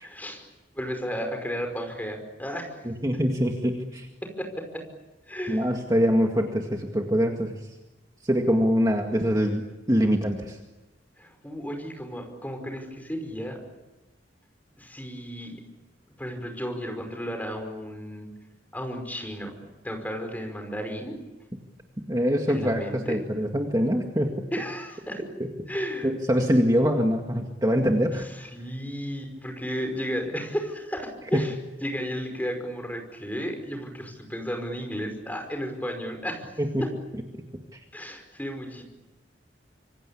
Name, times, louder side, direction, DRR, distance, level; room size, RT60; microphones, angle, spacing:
voice 1, 0.0-0.4 0.7-2.7 4.2-4.5 4.7-4.8 5.3-5.7 11.2-13.6 14.8-15.6 16.2-18.3 18.7-19.5 19.8-21.2 22.5-23.2 24.5-25.2 25.7-26.1 28.1-31.5 31.8-36.5 36.8-36.9 37.9-38.8, equal, 10° left, 4 dB, 5.4 m, -33 dB
voice 2, 2.8-4.1 5.5-7.6 8.2-9.6 9.9-10.6 22.1-24.5 25.4-25.5 26.0-28.3 31.3-31.4 36.6-36.9 37.7-37.8, equal, 20° right, 2 dB, 2.0 m, -24 dB
26.5 x 25.0 x 8.6 m, 1.0 s
head